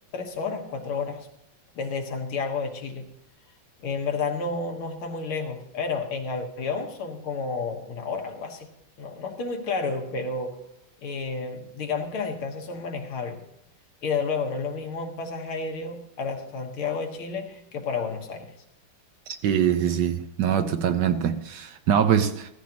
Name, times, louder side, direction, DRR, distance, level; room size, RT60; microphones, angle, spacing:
voice 1, 0.1-1.3 1.8-3.1 3.8-8.7 9.0-10.6 11.0-13.4 14.0-18.5, left 4 dB, 80° left, 2.2 m, -31 dB
voice 2, 19.3-22.5, right 9 dB, 70° right, 1.2 m, -23 dB
15.0 x 14.5 x 2.9 m
omnidirectional pair, 2.3 m